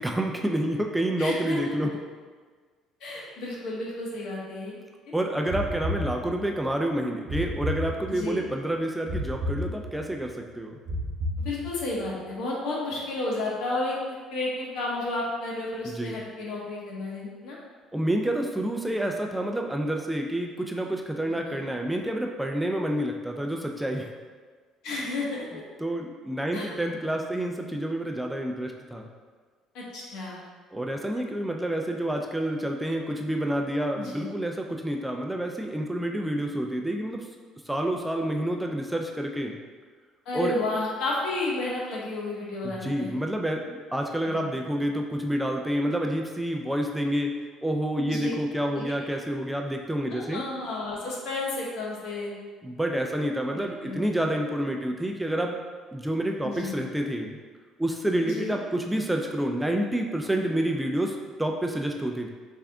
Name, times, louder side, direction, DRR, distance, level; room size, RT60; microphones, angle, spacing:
voice 1, 0.0-1.9 5.1-10.8 15.8-16.2 17.9-24.1 25.8-29.1 30.7-37.3 37.7-39.6 40.3-40.6 42.6-47.3 47.6-50.4 52.6-55.6 55.9-57.4 57.8-62.3, right 1 dB, 5° right, 2 dB, 0.3 m, -28 dB
voice 2, 1.2-1.8 3.0-4.8 5.1-5.2 8.1-8.4 11.4-14.0 14.3-17.6 21.4-21.6 24.8-25.6 26.5-26.7 29.7-30.4 33.9-34.3 40.3-43.1 44.3-44.5 48.0-48.3 48.7-48.8 50.1-52.3 53.5-54.1 56.4-56.8 58.2-58.6, left 2 dB, 75° left, -4 dB, 1.1 m, -32 dB
sound 1, 5.5-6.6 7.3-8.4 9.1-10.2 10.9-12.0, left 1 dB, 55° right, 0.7 m, -32 dB
3.5 x 3.3 x 3.5 m, 1.5 s
cardioid pair, 120°, 0 cm